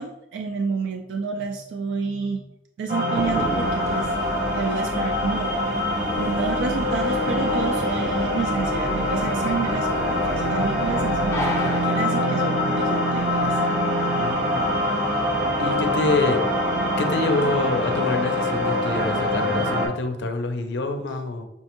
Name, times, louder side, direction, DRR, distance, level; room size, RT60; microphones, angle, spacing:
voice 1, 0.0-2.4 2.8-4.1 4.4-5.6 5.9-13.6, right 5 dB, 80° right, 4 dB, 0.3 m, -30 dB
sound 1, 2.9-19.9, left 1 dB, 65° right, 0.8 m, -24 dB
sound 2, 3.2-11.8, left 1 dB, 15° left, 0.5 m, -33 dB
voice 2, 14.2-14.7 15.6-16.4 17.0-21.4, left 2 dB, 70° left, 7 dB, 0.5 m, -26 dB
5.4 x 2.1 x 2.9 m, 0.86 s
head